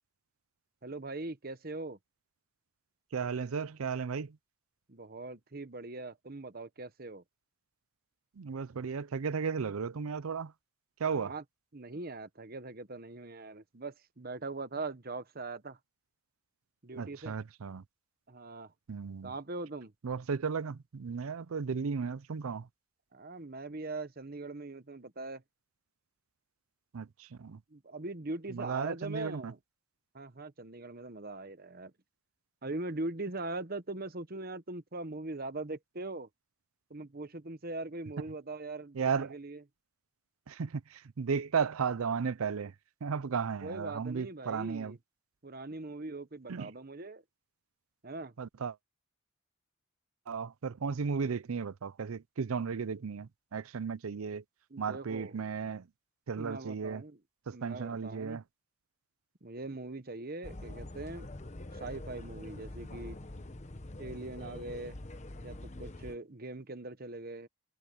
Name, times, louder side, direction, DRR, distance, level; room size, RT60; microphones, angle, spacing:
voice 1, 0.8-2.0 4.9-7.2 11.2-11.4 11.7-15.8 16.8-17.4 18.3-18.7 19.2-19.9 23.1-25.4 27.7-29.6 30.1-31.9 32.6-36.3 36.9-39.6 43.6-45.0 45.4-47.2 48.0-48.3 54.7-55.4 56.4-57.2 57.5-58.4 59.4-61.3 61.7-63.2 64.0-65.0 65.4-67.5, right 2 dB, 45° right, 1.1 m, -41 dB
voice 2, 3.1-4.4 8.4-10.5 11.0-11.3 17.0-17.8 18.9-19.3 20.0-22.7 26.9-27.6 28.5-29.5 38.9-39.4 40.5-42.7 43.0-45.0 46.5-46.7 48.4-48.8 50.3-54.4 54.8-55.9 56.3-57.0 57.5-58.4, right 5 dB, 80° right, 0.5 m, -35 dB
sound 1, 60.4-66.2, left 1 dB, 35° left, 1.1 m, -45 dB
head